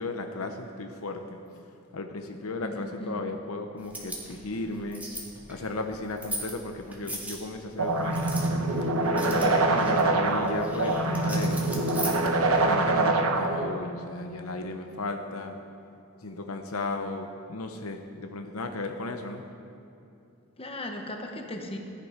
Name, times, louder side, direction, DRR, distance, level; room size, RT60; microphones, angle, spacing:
voice 1, 0.0-1.4 1.9-5.0 5.5-8.3 9.1-11.7 12.4-15.6 16.2-19.5, left 2 dB, 80° left, 5 dB, 0.9 m, -35 dB
voice 2, 2.6-3.1 9.4-9.8 20.6-21.8, left 1 dB, 25° left, 3 dB, 1.2 m, -37 dB
sound 1, 3.8-12.7, right 1 dB, 10° right, 1.9 m, -40 dB
sound 2, 7.8-13.8, right 2 dB, 75° right, 1.0 m, -25 dB
14.5 x 10.5 x 5.0 m, 2.7 s
head